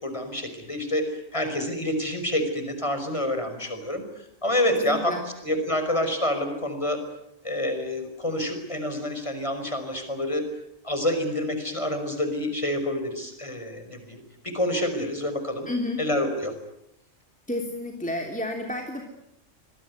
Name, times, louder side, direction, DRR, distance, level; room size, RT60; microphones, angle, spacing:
voice 1, 0.0-4.0 4.4-7.0 7.4-10.5 10.8-15.7 16.0-16.6, left 1 dB, 25° left, 8 dB, 5.3 m, -28 dB
voice 2, 4.8-5.2 15.7-16.0 17.5-19.0, left 1 dB, 5° left, 1 dB, 3.1 m, -30 dB
26.5 x 21.5 x 9.6 m, 0.79 s
omnidirectional pair, 1.3 m